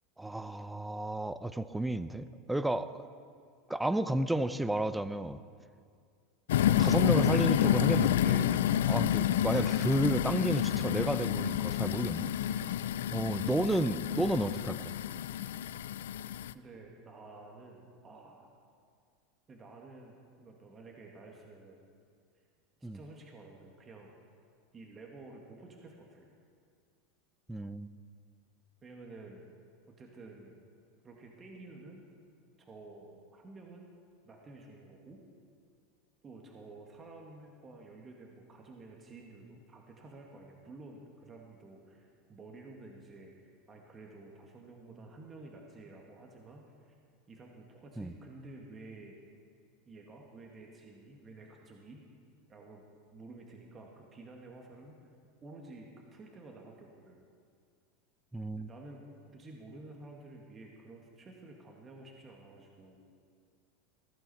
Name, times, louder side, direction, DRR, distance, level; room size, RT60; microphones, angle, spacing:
voice 1, 0.2-3.0 3.7-5.4 6.7-12.3 13.1-14.8 22.8-23.0 27.5-27.9 48.0-48.1 58.3-58.7, right 1 dB, 5° right, 14 dB, 0.6 m, -32 dB
sound 1, 6.5-16.5, left 11 dB, 80° left, 0.4 m, -29 dB
voice 2, 16.5-18.5 19.5-21.8 22.8-24.1 24.7-26.3 28.8-29.5 29.9-30.6 31.0-32.0 32.6-33.9 34.2-35.2 36.2-43.3 43.7-46.9 47.3-49.2 49.9-52.0 52.5-52.8 53.1-55.0 55.4-57.2 58.5-59.0 59.3-63.0, right 2 dB, 30° right, 0 dB, 2.1 m, -51 dB
15.5 x 14.0 x 4.4 m, 2.2 s
hypercardioid pair, 95°, 0 cm